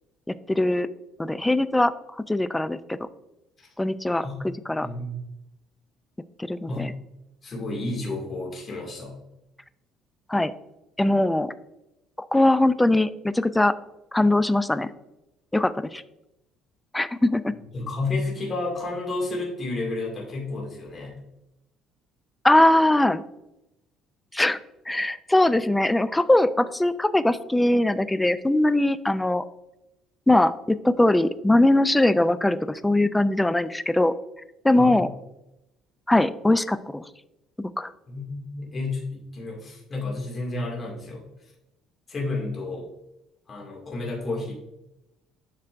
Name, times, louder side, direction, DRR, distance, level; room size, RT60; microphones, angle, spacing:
voice 1, 0.3-0.9 1.2-3.1 3.8-4.3 4.7-4.9 6.4-6.9 10.3-10.5 11.0-11.5 12.2-13.7 14.1-14.9 15.5-16.0 16.9-17.5 22.4-23.2 24.3-24.6 24.9-29.4 30.3-34.1 34.6-35.1 36.1-37.1 37.6-37.9, left 1 dB, 5° left, 14 dB, 0.3 m, -21 dB
voice 2, 4.8-5.2 6.7-6.9 7.4-9.2 17.7-21.2 34.8-35.1 38.1-41.2 42.1-42.9 43.5-44.5, left 2 dB, 30° left, -2 dB, 2.0 m, -31 dB
7.6 x 5.8 x 2.5 m, 0.91 s
cardioid pair, 140°, 0 cm